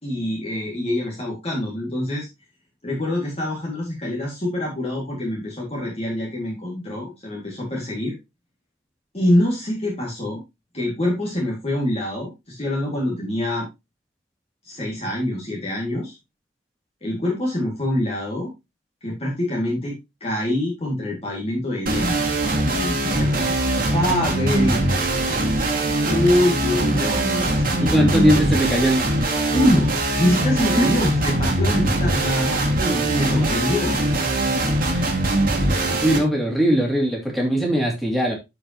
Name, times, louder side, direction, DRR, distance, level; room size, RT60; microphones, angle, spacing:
voice 1, 0.0-2.3 2.8-8.2 9.1-10.4 10.7-13.7 14.6-16.2 17.0-18.5 19.0-23.6 23.9-28.3 29.5-32.6 32.9-34.0, left 1 dB, 30° left, -3 dB, 2.2 m, -25 dB
sound 1, 21.9-36.2, right 1 dB, 45° right, 2.3 m, -22 dB
voice 2, 27.8-29.1 30.7-30.9 32.8-33.5 34.9-35.1 35.7-38.3, equal, ahead, -1 dB, 2.7 m, -21 dB
12.5 x 5.2 x 3.0 m, 0.23 s
head